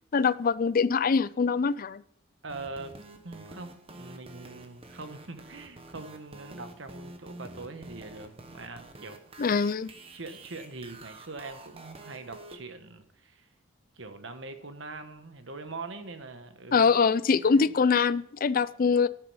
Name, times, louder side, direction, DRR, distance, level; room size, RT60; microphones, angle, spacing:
voice 1, 0.1-2.0 9.4-9.9 16.7-19.1, left 5 dB, 45° left, 0.4 m, -23 dB
voice 2, 2.4-3.0 3.2-9.2 10.1-13.5 13.9-16.9 17.4-17.6, right 3 dB, 65° right, 1.3 m, -42 dB
sound 1, 2.5-12.6, right 2 dB, 30° right, 1.1 m, -48 dB
12.0 x 6.8 x 5.5 m
head